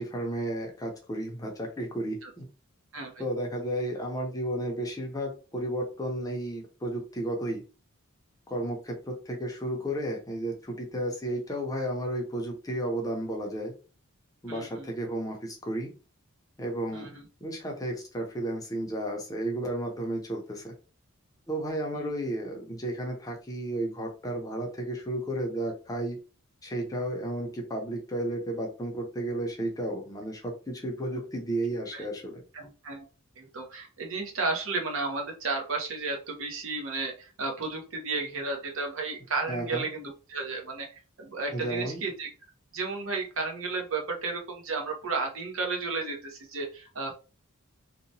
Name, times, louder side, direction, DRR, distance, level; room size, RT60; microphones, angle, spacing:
voice 1, 0.0-2.4 3.2-7.6 8.5-13.7 14.4-15.9 16.6-17.1 17.4-20.7 21.5-26.2 26.6-32.4 39.5-39.9 41.5-42.0, right 1 dB, 15° left, 1 dB, 0.6 m, -33 dB
voice 2, 2.9-3.2 14.5-14.9 16.9-17.2 21.9-22.1 31.9-32.0 32.5-33.0 33.4-42.3 42.7-47.1, right 3 dB, 65° right, 2 dB, 0.8 m, -33 dB
2.8 x 2.1 x 2.7 m, 0.34 s
head